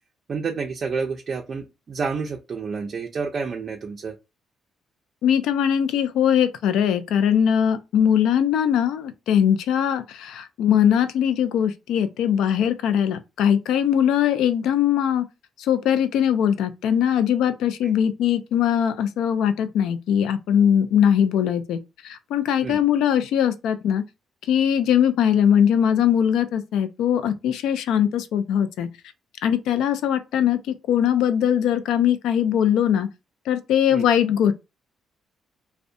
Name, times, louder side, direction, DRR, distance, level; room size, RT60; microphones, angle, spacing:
voice 1, 0.3-4.2 17.8-17.9 22.6-22.8 33.9-34.1, right 5 dB, 45° right, 0.4 m, -29 dB
voice 2, 5.2-15.3 15.6-21.8 22.0-24.0 24.5-28.9 29.4-33.1 33.5-34.5, left 9 dB, 85° left, 0.3 m, -21 dB
2.5 x 2.1 x 2.5 m
cardioid pair, 90°, 0 cm